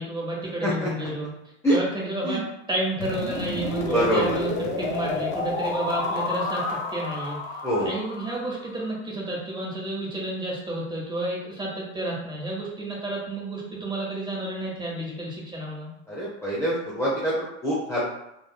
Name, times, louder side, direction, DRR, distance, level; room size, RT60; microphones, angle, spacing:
voice 1, 0.0-1.3 1.7-15.9, right 1 dB, 10° right, -4 dB, 1.3 m, -31 dB
voice 2, 0.6-1.1 1.6-1.8 2.2-2.4 3.8-4.4 7.6-7.9 16.1-18.0, equal, 5° left, -8 dB, 0.9 m, -25 dB
sound 1, 3.0-8.9, left 2 dB, 85° left, 0.9 m, -30 dB
4.0 x 3.0 x 2.2 m, 0.84 s
hypercardioid pair, 95°, 37 cm